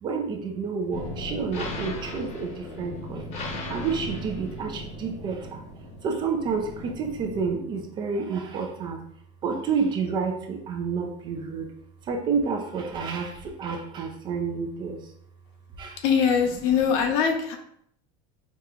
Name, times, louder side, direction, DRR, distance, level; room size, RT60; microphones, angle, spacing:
voice 1, 0.0-3.3 3.7-5.6 6.0-9.0 9.4-11.7 12.0-15.1 15.8-16.0 16.7-16.9, right 5 dB, 25° right, 3 dB, 0.4 m, -29 dB
sound 1, 0.9-7.5, left 1 dB, 40° left, 0.8 m, -37 dB
voice 2, 16.0-17.6, left 7 dB, 65° left, 4 dB, 0.7 m, -22 dB
4.7 x 2.8 x 2.4 m, 0.69 s
cardioid pair, 175°, 18 cm